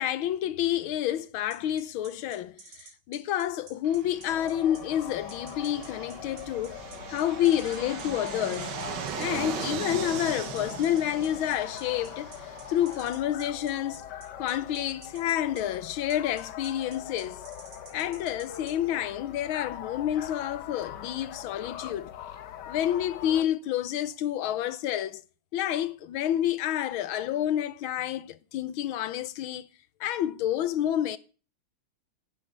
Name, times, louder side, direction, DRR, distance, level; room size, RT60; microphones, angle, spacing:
voice 1, 0.0-6.8 7.1-8.7 9.2-14.0 14.4-17.4 17.9-22.1 22.7-25.2 25.5-29.7 30.0-31.2, left 11 dB, 80° left, 1.6 m, -29 dB
sound 1, 1.5-18.7, right 3 dB, 75° right, 3.8 m, -50 dB
Fixed-wing aircraft airplane, 3.8-13.1, right 9 dB, 60° right, 1.5 m, -39 dB
sound 2, 4.2-23.4, left 9 dB, 60° left, 1.4 m, -42 dB
9.9 x 8.9 x 8.6 m
omnidirectional pair, 2.2 m